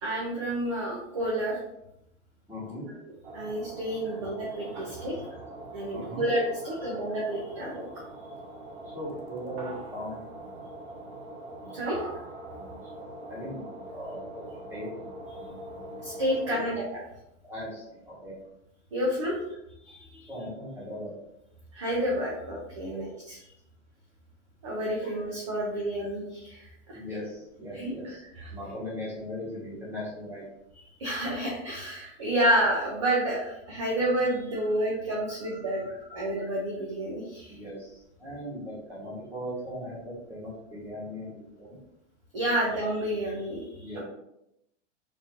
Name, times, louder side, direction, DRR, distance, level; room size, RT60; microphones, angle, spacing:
voice 1, 0.0-1.6 2.8-2.9 3.3-5.3 5.7-7.8 11.7-12.0 16.0-17.0 18.9-19.4 19.8-20.3 21.7-23.4 24.6-27.0 27.7-27.9 28.3-28.5 31.0-35.8 36.1-37.6 42.3-44.0, right 1 dB, 25° right, -4 dB, 0.3 m, -29 dB
voice 2, 2.5-2.9 4.0-4.1 5.9-6.3 6.6-6.9 8.9-10.2 13.0-13.6 13.9-14.4 14.7-14.9 16.5-16.7 17.4-18.3 19.3-19.4 20.3-21.1 22.8-23.0 25.0-25.1 26.9-28.2 28.5-30.4 34.5-34.7 35.2-36.5 37.5-41.8 43.2-43.3 43.8-44.0, equal, 5° right, -7 dB, 0.8 m, -39 dB
sound 1, 3.2-16.7, right 1 dB, 65° right, 0.9 m, -42 dB
3.5 x 2.4 x 2.8 m, 0.83 s
supercardioid pair, 170°, 37 cm